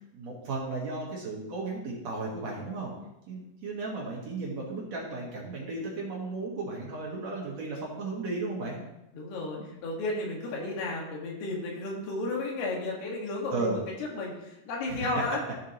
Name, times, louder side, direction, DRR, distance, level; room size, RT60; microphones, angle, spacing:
voice 1, 0.1-2.9 3.3-8.8 9.6-9.7 13.5-13.8 14.9-15.1, right 3 dB, 55° right, -3 dB, 2.3 m, -35 dB
voice 2, 9.1-15.4, left 2 dB, 80° left, -1 dB, 3.8 m, -33 dB
14.0 x 7.3 x 3.0 m, 0.90 s
omnidirectional pair, 4.8 m